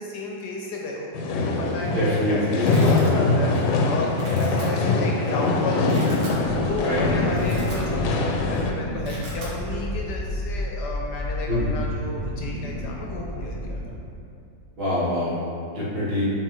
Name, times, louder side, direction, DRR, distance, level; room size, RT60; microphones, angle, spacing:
voice 1, 0.0-6.3 6.6-13.8, left 2 dB, 70° left, -1 dB, 1.1 m, -33 dB
sound 1, 1.1-8.7, left 3 dB, 85° left, 1.4 m, -23 dB
Domestic sounds home sounds, 1.6-1.9 2.2-3.1 3.5-3.8 4.1-4.6 5.3-5.4 5.7-6.4 6.8-6.9 7.2-8.2 8.4-8.6 8.9-9.5, right 1 dB, 65° right, 1.8 m, -40 dB
voice 2, 1.9-2.9 6.8-7.3 11.5-11.8 14.8-15.4 15.7-16.3, left 1 dB, 85° right, -10 dB, 2.6 m, -25 dB
sound 2, 6.3-13.9, left 1 dB, 40° left, 0.4 m, -32 dB
8.3 x 3.8 x 3.1 m, 2.6 s
omnidirectional pair, 2.2 m